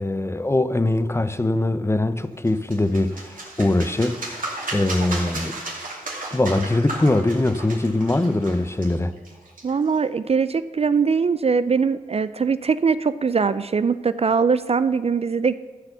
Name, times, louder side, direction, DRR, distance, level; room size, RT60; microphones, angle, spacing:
voice 1, 0.0-5.6 6.3-9.1, left 2 dB, 15° left, 0.6 m, -22 dB
sound 1, 2.4-10.0, right 2 dB, 60° right, 2.7 m, -34 dB
voice 2, 9.6-15.6, right 5 dB, 40° right, 0.4 m, -21 dB
13.5 x 4.8 x 6.8 m
cardioid pair, 50°, 15 cm